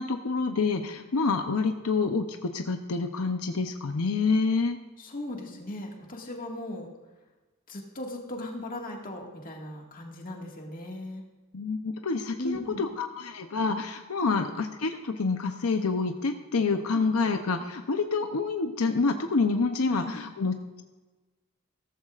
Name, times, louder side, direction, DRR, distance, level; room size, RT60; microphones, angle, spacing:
voice 1, 0.0-4.8 11.5-20.8, left 4 dB, 85° left, 6 dB, 0.7 m, -27 dB
voice 2, 5.0-6.9 7.7-11.2 12.4-12.9 14.2-14.4 16.9-17.0 19.9-20.1, left 1 dB, 40° left, 0 dB, 1.9 m, -37 dB
16.0 x 14.0 x 2.5 m, 1.2 s
head